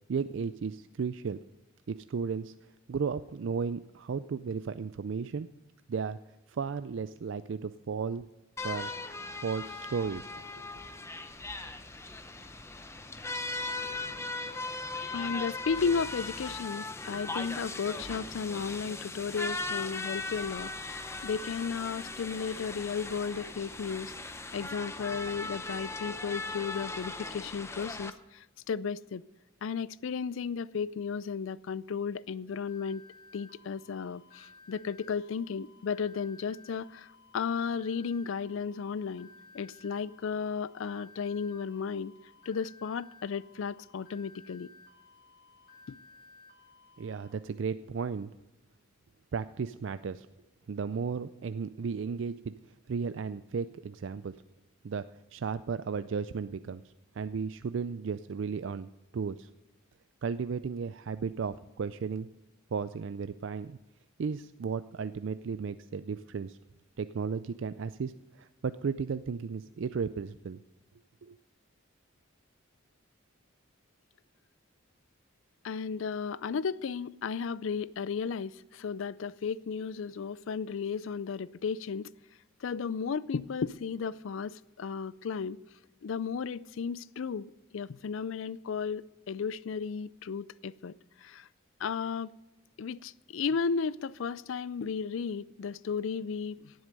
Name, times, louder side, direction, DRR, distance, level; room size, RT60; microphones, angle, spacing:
voice 1, 0.1-1.4 1.9-2.5 2.9-5.5 5.9-6.2 6.5-8.3 8.6-8.9 9.4-10.3 47.0-48.3 49.3-50.3 50.7-52.5 52.9-54.4 54.8-55.1 55.3-56.8 57.1-58.9 59.1-59.5 60.2-62.3 62.7-63.8 64.2-66.6 67.0-70.6 71.2-71.4, right 5 dB, 60° right, 0.4 m, -34 dB
sound 1, 8.6-28.1, left 3 dB, 15° left, 0.6 m, -39 dB
voice 2, 13.8-14.2 15.1-24.1 24.5-29.2 29.6-33.0 33.3-39.3 39.5-42.1 42.5-44.7 45.9-46.0 75.6-82.1 82.6-85.6 86.0-91.5 91.8-92.3 92.8-96.7, left 6 dB, 70° left, 0.4 m, -34 dB
sound 2, 32.7-47.3, left 3 dB, 45° left, 3.0 m, -57 dB
17.5 x 7.9 x 5.3 m
head